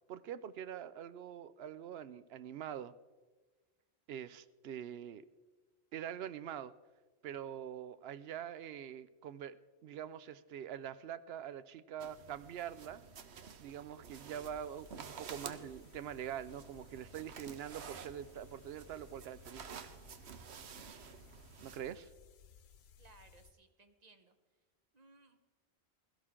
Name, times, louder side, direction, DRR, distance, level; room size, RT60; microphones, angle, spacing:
voice 1, 0.1-2.9 4.1-5.2 5.9-6.7 7.2-9.6 9.8-13.0 13.6-19.7 21.6-22.1, right 9 dB, 75° right, 15 dB, 0.8 m, -44 dB
sound 1, 12.0-22.0, right 6 dB, 90° right, 1.1 m, -51 dB
sound 2, 14.3-23.5, left 7 dB, 75° left, 0.9 m, -60 dB
voice 2, 23.0-24.6 24.9-25.4, right 3 dB, 40° right, 7 dB, 1.1 m, -63 dB
16.5 x 13.5 x 3.7 m, 1.3 s
omnidirectional pair, 1.1 m